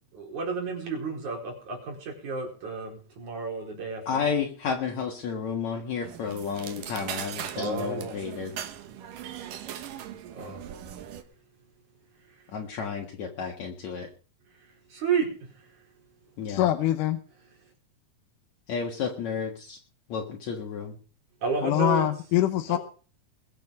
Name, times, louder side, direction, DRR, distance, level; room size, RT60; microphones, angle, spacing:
voice 1, 0.1-4.2 7.5-8.1 10.3-10.6 14.9-15.3 21.4-22.1 22.7-22.8, right 5 dB, 65° right, 5.9 m, -31 dB
voice 2, 4.1-8.5 12.5-14.1 16.4-16.7 18.7-19.8 20.1-21.0, left 6 dB, 60° left, 2.9 m, -32 dB
sound 1, 6.0-11.2, right 10 dB, 85° right, 3.0 m, -39 dB
voice 3, 16.5-17.2 21.6-22.8, left 13 dB, 80° left, 2.4 m, -24 dB
22.0 x 8.1 x 5.3 m
omnidirectional pair, 3.7 m